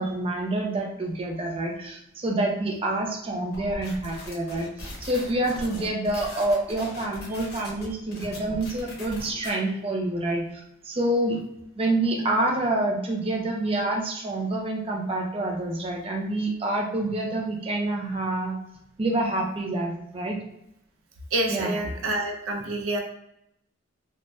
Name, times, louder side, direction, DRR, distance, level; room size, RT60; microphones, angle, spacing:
voice 1, 0.0-4.7 5.0-11.4 11.8-18.5 19.0-20.4 21.5-21.7, right 1 dB, 30° right, -1 dB, 0.5 m, -27 dB
sound 1, 3.5-9.5, left 1 dB, 50° left, 0.9 m, -40 dB
voice 2, 21.3-23.0, right 1 dB, 80° right, 2 dB, 0.5 m, -27 dB
3.2 x 2.1 x 2.5 m, 0.78 s
head